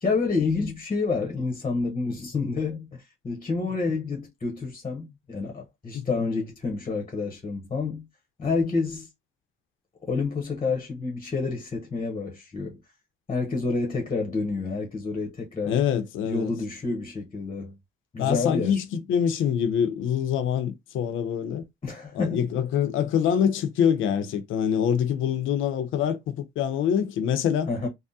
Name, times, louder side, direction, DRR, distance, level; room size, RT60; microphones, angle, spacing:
voice 1, 0.0-8.1 8.4-9.1 10.0-12.8 13.3-15.8 16.2-17.7 18.1-18.8 21.8-22.5 27.7-27.9, left 4 dB, 30° left, 0.9 m, -29 dB
voice 2, 15.6-16.5 18.2-21.6 22.1-27.7, left 8 dB, 85° left, 0.6 m, -25 dB
3.5 x 2.1 x 2.6 m
cardioid pair, 90°, 20 cm